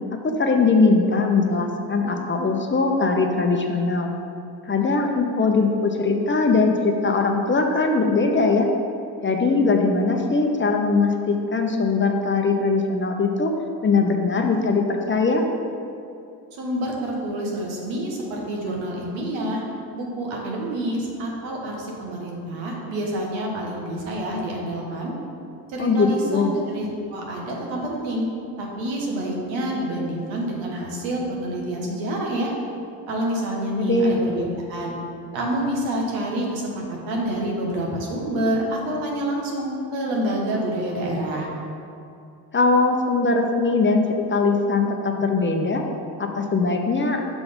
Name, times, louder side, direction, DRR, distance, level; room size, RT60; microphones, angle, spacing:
voice 1, 0.2-4.1 4.7-8.7 9.2-13.5 13.8-15.4 25.8-26.5 33.8-34.1 42.5-45.8 46.2-47.2, left 3 dB, 25° left, 3 dB, 0.7 m, -21 dB
voice 2, 16.6-19.6 19.9-25.1 25.7-28.3 28.6-32.5 33.1-34.9 35.3-41.5, right 1 dB, 80° right, -1 dB, 1.4 m, -27 dB
5.9 x 3.8 x 5.3 m, 2.6 s
supercardioid pair, 65°, 45 cm